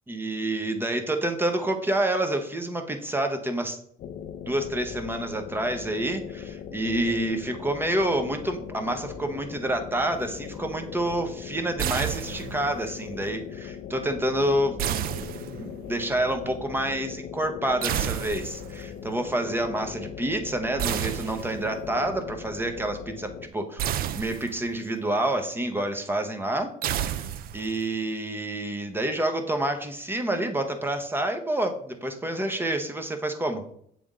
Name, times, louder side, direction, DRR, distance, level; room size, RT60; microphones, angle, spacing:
voice 1, 0.1-3.8 4.5-15.3 15.6-23.8 24.2-26.7 27.5-33.6, right 1 dB, 15° right, 6 dB, 0.8 m, -28 dB
sound 1, 4.0-23.5, left 8 dB, 55° left, 0.4 m, -40 dB
sound 2, 11.8-12.7 14.8-15.9 17.8-18.8 20.8-21.8 23.8-24.8 26.8-27.8, right 11 dB, 60° right, 0.4 m, -30 dB
7.6 x 3.4 x 3.7 m, 0.66 s
cardioid pair, 110°, 17 cm